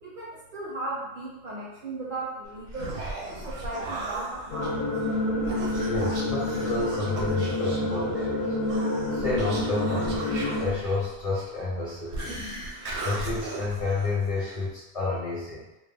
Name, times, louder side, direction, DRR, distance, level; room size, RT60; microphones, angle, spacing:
voice 1, 0.0-3.0 3.3-4.9, right 2 dB, 55° right, -5 dB, 0.6 m, -36 dB
Human voice, 2.5-14.7, right 2 dB, 80° right, 0.9 m, -37 dB
sound 1, 4.5-10.7, left 1 dB, 70° left, 0.8 m, -28 dB
voice 2, 5.8-8.4 9.1-15.6, left 3 dB, 35° left, -7 dB, 0.8 m, -30 dB
2.2 x 2.2 x 3.3 m, 0.96 s
omnidirectional pair, 1.1 m